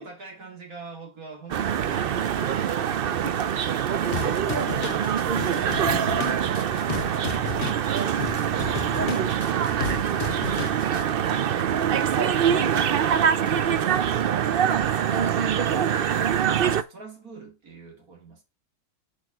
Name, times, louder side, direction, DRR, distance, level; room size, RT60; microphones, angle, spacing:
voice 1, 0.0-3.0 6.1-8.2 16.7-18.4, right 3 dB, 60° right, 2.9 m, -45 dB
sound 1, 1.5-16.8, right 8 dB, 85° right, 0.5 m, -24 dB
sound 2, 4.0-11.0, left 9 dB, 55° left, 0.7 m, -34 dB
voice 2, 4.0-6.0 7.9-8.4 9.0-9.4 11.9-14.7 15.1-15.9, right 5 dB, 40° right, 0.9 m, -34 dB
6.3 x 5.2 x 4.9 m
omnidirectional pair, 1.7 m